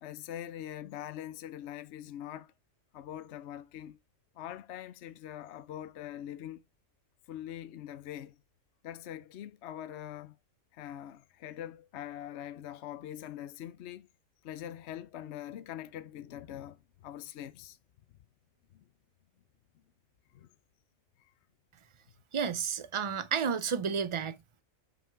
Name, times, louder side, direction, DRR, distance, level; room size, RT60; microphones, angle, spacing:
voice 1, 0.0-2.5 2.9-4.0 4.3-6.6 7.3-8.4 8.8-10.4 10.7-14.1 14.4-17.8 18.7-18.8 20.3-20.5 21.2-21.3, left 11 dB, 60° left, 0.9 m, -43 dB
voice 2, 22.3-24.6, right 6 dB, 50° right, 0.3 m, -32 dB
5.9 x 5.5 x 4.6 m
omnidirectional pair, 1.4 m